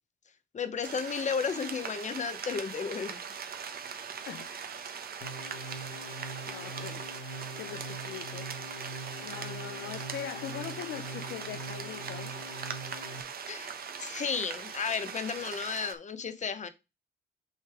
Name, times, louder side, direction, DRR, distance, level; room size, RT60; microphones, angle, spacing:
voice 1, 0.5-3.2 13.5-16.7, left 6 dB, 35° left, 0.9 m, -33 dB
sound 1, 0.8-15.9, right 6 dB, 50° right, 1.0 m, -41 dB
voice 2, 4.3-4.8 6.5-8.9 9.2-12.4, left 10 dB, 65° left, 0.5 m, -42 dB
sound 2, 5.2-13.2, right 1 dB, 90° left, 1.0 m, -43 dB
6.5 x 3.2 x 4.8 m
cardioid pair, 90°, 20 cm